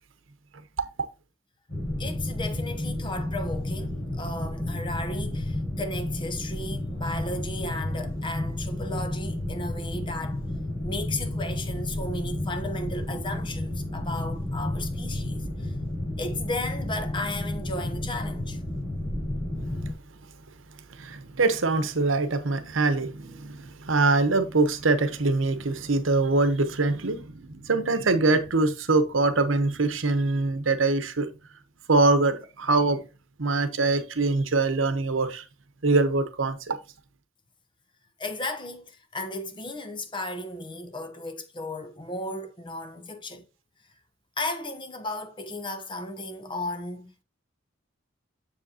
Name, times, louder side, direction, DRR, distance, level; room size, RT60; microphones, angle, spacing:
sound 1, 1.7-19.9, left 1 dB, 50° left, 4.9 m, -31 dB
voice 1, 2.0-10.4 10.8-15.7 16.2-18.6 38.2-43.4 44.4-47.1, left 2 dB, 25° left, 0.9 m, -35 dB
voice 2, 20.9-31.3 31.9-33.0 33.4-35.4 35.8-36.8, right 3 dB, 70° right, 1.0 m, -23 dB
7.5 x 7.0 x 2.8 m
head